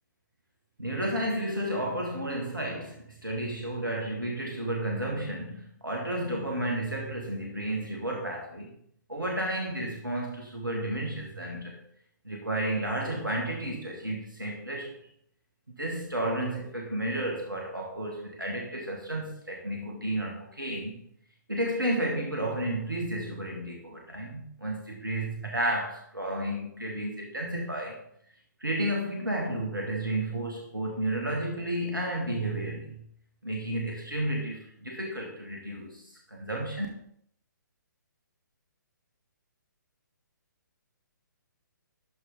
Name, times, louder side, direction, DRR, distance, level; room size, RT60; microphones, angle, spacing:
voice 1, 0.8-8.7 9.1-11.8 12.2-14.9 15.8-21.0 21.5-28.0 28.6-33.0 33.4-36.9, right 1 dB, 85° right, 0 dB, 1.7 m, -32 dB
12.5 x 4.7 x 3.7 m, 0.68 s
figure-of-eight pair, 130°, 11 cm